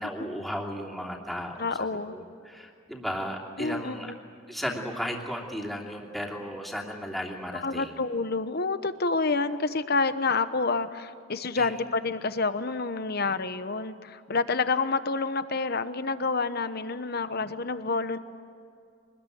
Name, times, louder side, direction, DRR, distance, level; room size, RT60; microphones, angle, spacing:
voice 1, 0.0-1.7 2.1-4.1 4.5-7.9 11.6-11.7, equal, ahead, -1 dB, 2.9 m, -35 dB
voice 2, 1.6-2.2 3.6-4.1 7.5-18.2, left 4 dB, 45° left, 11 dB, 1.0 m, -28 dB
24.5 x 20.5 x 9.4 m, 2.5 s
head